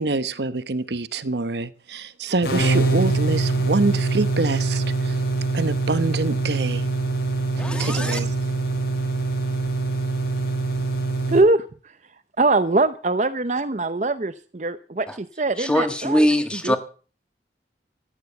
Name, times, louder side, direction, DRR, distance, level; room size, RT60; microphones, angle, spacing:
voice 1, 0.0-5.2 5.5-6.9 7.8-8.3, right 3 dB, 75° right, 1.0 m, -25 dB
sound 1, 2.4-11.4, right 3 dB, 70° left, 4.5 m, -24 dB
voice 2, 7.6-8.2 15.1-15.2 15.6-16.8, equal, 5° left, 1.4 m, -22 dB
voice 3, 11.3-11.9 12.4-16.3 16.6-16.8, right 2 dB, 40° right, 0.7 m, -22 dB
14.0 x 9.3 x 7.8 m
head